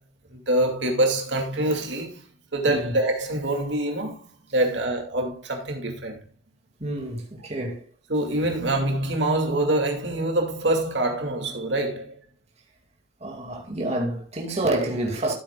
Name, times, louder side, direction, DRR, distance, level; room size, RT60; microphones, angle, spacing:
voice 1, 0.3-2.2 2.5-6.2 8.1-12.1, right 1 dB, 65° right, 2.3 m, -25 dB
voice 2, 6.8-7.8 13.2-15.3, right 1 dB, 35° right, 2.3 m, -28 dB
14.5 x 8.4 x 2.3 m
head